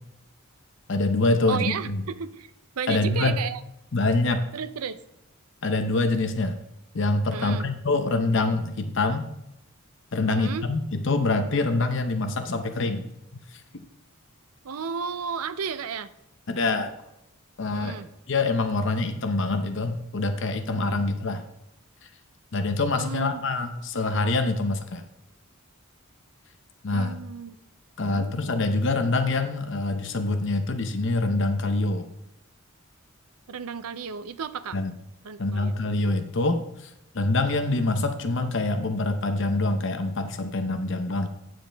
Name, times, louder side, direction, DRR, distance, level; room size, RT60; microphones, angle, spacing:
voice 1, 0.9-2.0 2.9-3.4 3.9-4.4 5.6-6.6 6.9-9.3 10.1-13.0 13.5-13.6 16.5-16.9 17.6-18.0 18.3-21.4 22.5-25.0 26.8-27.2 28.0-32.1 34.7-34.9 35.4-41.3, left 2 dB, 55° left, 8 dB, 0.7 m, -25 dB
voice 2, 1.5-2.5 2.8-3.6 4.5-5.0 7.3-7.7 10.2-10.7 14.6-16.1 17.7-18.1 20.9-21.1 22.9-23.4 26.9-27.6 28.0-28.3 33.5-34.8 35.2-35.8, right 6 dB, 85° right, 13 dB, 0.6 m, -33 dB
9.0 x 7.7 x 3.4 m, 0.86 s
head